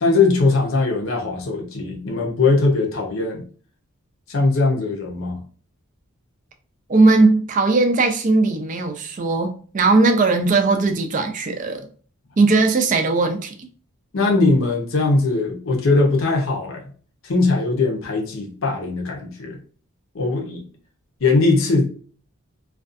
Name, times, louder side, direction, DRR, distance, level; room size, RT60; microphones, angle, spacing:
voice 1, 0.0-3.4 4.3-5.4 14.1-16.9 17.2-19.6 20.1-20.7 21.2-21.9, left 3 dB, 65° left, 0.6 m, -20 dB
voice 2, 6.9-11.9 12.4-13.7, right 3 dB, 35° right, 0.4 m, -18 dB
2.4 x 2.3 x 2.5 m
head